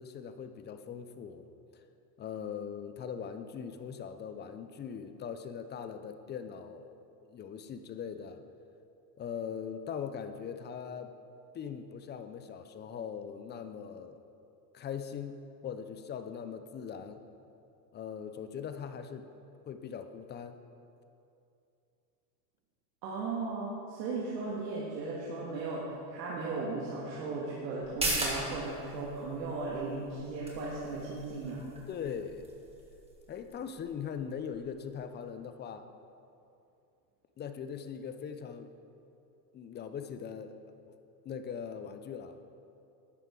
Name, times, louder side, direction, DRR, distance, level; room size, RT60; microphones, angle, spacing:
voice 1, 0.0-1.5 2.2-6.9 7.2-8.4 9.2-11.1 11.5-14.2 14.7-17.2 17.9-19.3 19.7-20.6 31.9-32.5 33.3-35.8 37.4-38.7 39.5-40.6 40.9-41.0 41.2-42.4, left 7 dB, 20° left, 9 dB, 0.5 m, -40 dB
voice 2, 23.0-31.6, right 3 dB, 85° right, -5 dB, 2.0 m, -36 dB
sound 1, 27.8-34.9 35.3-35.4, right 2 dB, 10° right, 2.0 m, -40 dB
12.5 x 9.2 x 3.8 m, 2.6 s
supercardioid pair, 110°, 49 cm